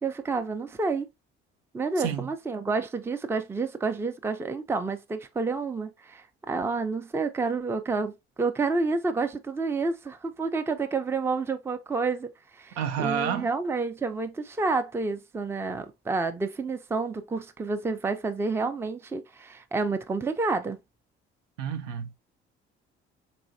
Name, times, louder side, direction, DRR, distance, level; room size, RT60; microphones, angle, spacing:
voice 1, 0.0-1.1 1.7-20.8, right 3 dB, 10° right, 0.4 m, -29 dB
voice 2, 2.0-2.3 12.8-13.5 21.6-22.1, right 8 dB, 70° right, 0.6 m, -29 dB
4.0 x 3.0 x 2.5 m
figure-of-eight pair, 50°, 32 cm